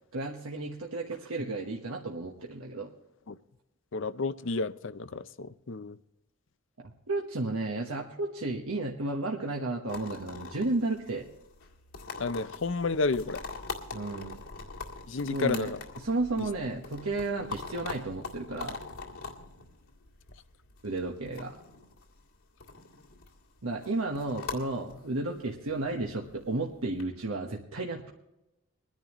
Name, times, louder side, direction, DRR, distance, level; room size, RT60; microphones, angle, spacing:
voice 1, 0.1-2.9 6.8-11.2 13.9-14.4 15.2-18.8 20.8-21.5 23.6-28.1, right 2 dB, 75° right, 1.2 m, -33 dB
voice 2, 3.9-6.0 12.2-13.4 15.1-15.8, left 3 dB, 55° left, 0.6 m, -31 dB
sound 1, 9.9-27.0, left 4 dB, 75° left, 2.0 m, -43 dB
22.5 x 10.5 x 3.1 m
head